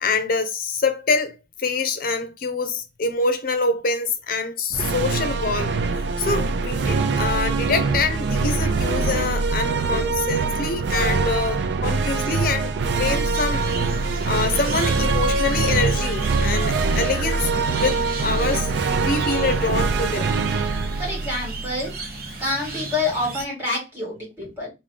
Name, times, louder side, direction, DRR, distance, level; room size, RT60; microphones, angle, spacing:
voice 1, 0.0-13.7 14.2-20.3, left 4 dB, 55° left, 0.7 m, -25 dB
sound 1, 4.7-22.2, right 4 dB, 75° right, 0.4 m, -23 dB
sound 2, 13.3-23.5, right 3 dB, 55° right, 0.9 m, -35 dB
voice 2, 21.0-21.9 22.4-24.7, left 2 dB, 15° right, 2.4 m, -27 dB
3.7 x 2.6 x 3.3 m
head